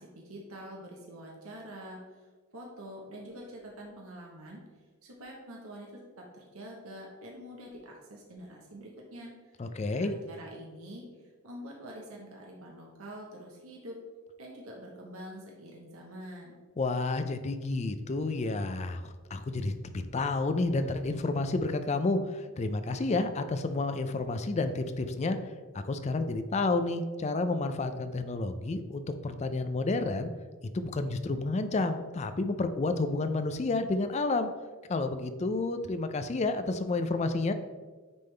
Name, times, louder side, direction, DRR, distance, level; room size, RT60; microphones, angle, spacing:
voice 1, 0.0-2.0 2.5-4.6 5.0-9.6 9.9-11.0 11.4-14.0 14.4-16.6, equal, 75° right, -1 dB, 1.0 m, -46 dB
voice 2, 9.6-10.1 16.8-25.4 25.7-30.3 30.7-34.5 34.9-37.5, left 3 dB, 30° left, 9 dB, 0.4 m, -30 dB
9.2 x 3.6 x 3.3 m, 1.4 s
head